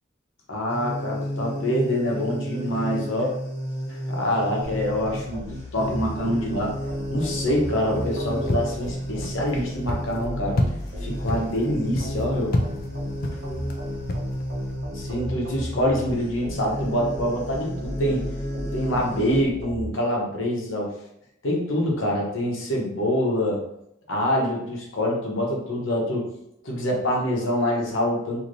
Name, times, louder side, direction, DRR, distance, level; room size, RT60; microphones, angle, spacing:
voice 1, 0.5-3.3 3.9-6.8 7.1-10.6 11.0-12.5 14.9-18.2 18.7-20.9 21.4-23.6 24.1-26.3 26.6-28.4, equal, 80° left, -2 dB, 0.9 m, -25 dB
sound 1, 0.7-19.4, equal, 15° left, 0.7 m, -33 dB
sound 2, 4.6-19.9, equal, 50° right, 0.9 m, -36 dB
sound 3, 7.9-14.7, left 1 dB, 50° left, 0.4 m, -31 dB
3.1 x 2.8 x 2.6 m, 0.78 s
head